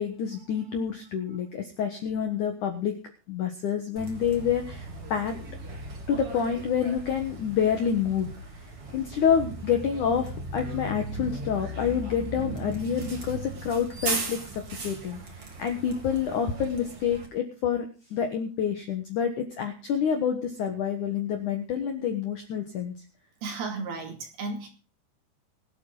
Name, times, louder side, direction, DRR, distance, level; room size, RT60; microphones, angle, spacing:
voice 1, 0.0-3.0 3.3-5.4 6.1-8.3 8.9-15.2 15.6-17.9 18.1-22.9, left 7 dB, 65° left, 6 dB, 2.0 m, -28 dB
Bus, 4.0-17.3, right 2 dB, 35° right, 3.4 m, -37 dB
voice 2, 23.4-24.7, right 3 dB, 60° right, 3 dB, 4.0 m, -34 dB
23.5 x 8.5 x 3.9 m, 0.36 s
omnidirectional pair, 5.5 m